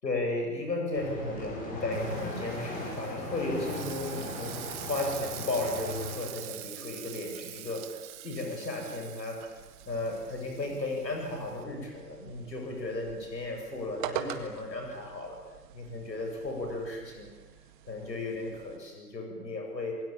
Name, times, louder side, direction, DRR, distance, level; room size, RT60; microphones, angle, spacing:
voice 1, 0.0-9.6 9.9-15.4 15.7-17.3 17.9-20.0, left 2 dB, 85° left, 2 dB, 8.0 m, -35 dB
sound 1, 0.9-6.2, left 2 dB, 15° left, 5.6 m, -38 dB
Frying (food), 1.9-11.6, right 15 dB, 15° right, 1.0 m, -45 dB
sound 2, 9.6-18.8, right 9 dB, 30° right, 2.0 m, -44 dB
28.0 x 21.5 x 9.0 m, 1.2 s
hypercardioid pair, 145°, 49 cm